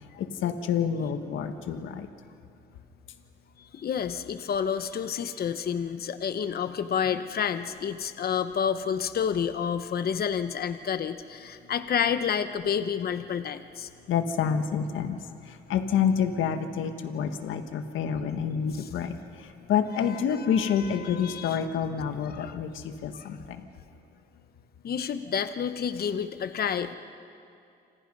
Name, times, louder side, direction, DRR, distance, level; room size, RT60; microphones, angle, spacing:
voice 1, 0.2-2.1 14.1-15.2 15.5-23.6, left 7 dB, 80° left, 7 dB, 1.5 m, -28 dB
voice 2, 3.7-13.9 18.7-18.9 19.9-21.6 22.3-22.6 23.1-23.3 24.8-26.9, left 7 dB, 50° left, 10 dB, 1.0 m, -30 dB
27.5 x 26.5 x 5.5 m, 2.5 s
cardioid pair, 90°, 20 cm